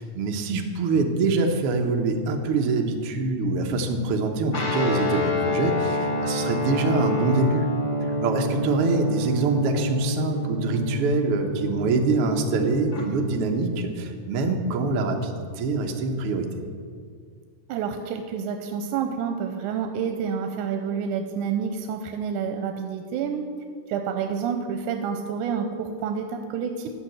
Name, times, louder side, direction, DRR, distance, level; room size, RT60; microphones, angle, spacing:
voice 1, 0.0-7.7 8.0-16.5, right 3 dB, 60° right, 3 dB, 1.6 m, -25 dB
Guitar, 4.5-13.0, left 1 dB, 65° left, 0.7 m, -28 dB
voice 2, 17.7-23.5 23.9-26.9, right 7 dB, 90° right, 5 dB, 2.1 m, -28 dB
12.0 x 5.9 x 7.9 m, 2.1 s
omnidirectional pair, 3.5 m